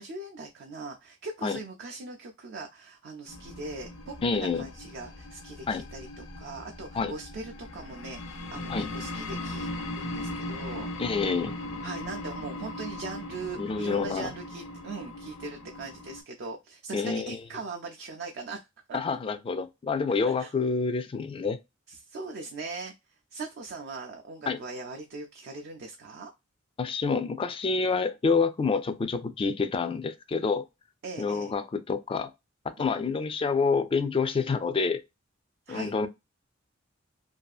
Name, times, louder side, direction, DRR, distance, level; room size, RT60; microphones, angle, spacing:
voice 1, 0.0-9.7 10.0-10.9 11.8-19.0 20.4-20.5 21.9-22.9 23.3-26.3 31.0-31.5 32.8-33.0 35.7-35.9, right 3 dB, 55° right, 0.4 m, -40 dB
sound 1, 3.3-16.2, left 1 dB, 90° left, 0.6 m, -39 dB
voice 2, 4.2-4.7 5.7-5.8 6.9-7.1 8.7-8.9 11.0-11.6 13.6-14.3 16.9-17.4 18.9-21.6 24.5-24.6 26.8-30.7 31.2-32.3 32.8-35.0 35.7-36.1, left 4 dB, 25° left, 0.3 m, -27 dB
2.6 x 2.4 x 2.3 m
head